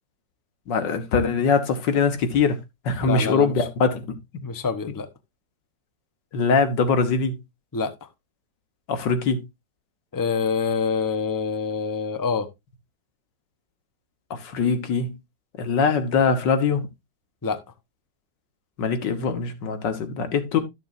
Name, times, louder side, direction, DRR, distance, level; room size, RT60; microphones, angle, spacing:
voice 1, 0.7-2.6 2.9-4.2 6.3-7.4 8.9-9.4 14.3-15.2 15.6-16.8 18.8-20.6, left 5 dB, 80° left, 2.0 m, -22 dB
voice 2, 3.1-3.5 4.4-5.1 7.7-8.1 10.1-12.5 17.4-17.6, left 5 dB, 20° left, 0.5 m, -26 dB
13.0 x 6.9 x 2.6 m
omnidirectional pair, 1.9 m